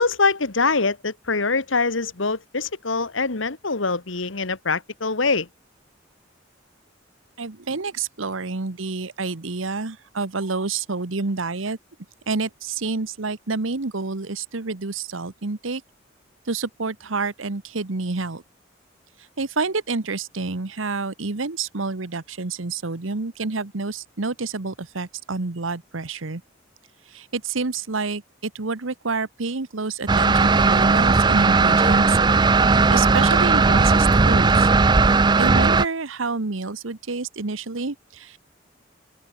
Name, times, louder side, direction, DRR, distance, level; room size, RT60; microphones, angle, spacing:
voice 1, 0.0-5.5, left 4 dB, 80° left, 1.8 m, -23 dB
voice 2, 7.4-11.8 12.3-15.8 16.5-18.4 19.4-26.4 27.1-32.2 32.7-34.7 35.4-38.4, right 4 dB, 90° right, 1.2 m, -28 dB
sound 1, 30.1-35.9, right 4 dB, 20° right, 0.4 m, -17 dB
head